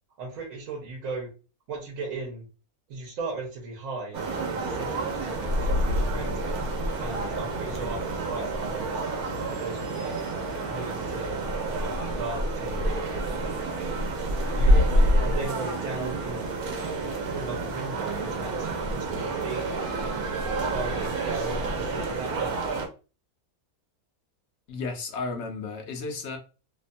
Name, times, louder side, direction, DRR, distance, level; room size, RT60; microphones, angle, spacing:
voice 1, 0.2-1.3 1.7-2.5 2.9-6.5 7.0-9.0 9.6-10.1 10.6-13.8 14.5-14.9 15.2-16.4 17.3-20.1 20.6-22.6, right 3 dB, 70° right, 1.1 m, -37 dB
sound 1, 4.1-22.9, right 1 dB, 85° right, 1.1 m, -28 dB
voice 2, 24.7-26.4, left 3 dB, 65° left, 0.7 m, -33 dB
2.8 x 2.1 x 2.5 m
omnidirectional pair, 1.6 m